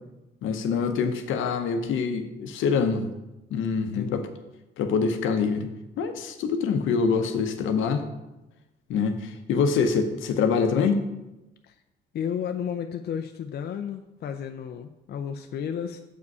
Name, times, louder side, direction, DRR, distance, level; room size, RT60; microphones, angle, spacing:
voice 1, 0.4-3.1 3.5-4.2 4.8-5.7 6.0-8.1 8.9-11.0, left 5 dB, 80° left, 8 dB, 0.8 m, -25 dB
voice 2, 12.1-16.0, left 8 dB, 55° left, 6 dB, 0.4 m, -32 dB
6.9 x 4.9 x 4.8 m, 0.98 s
cardioid pair, 90°, 20 cm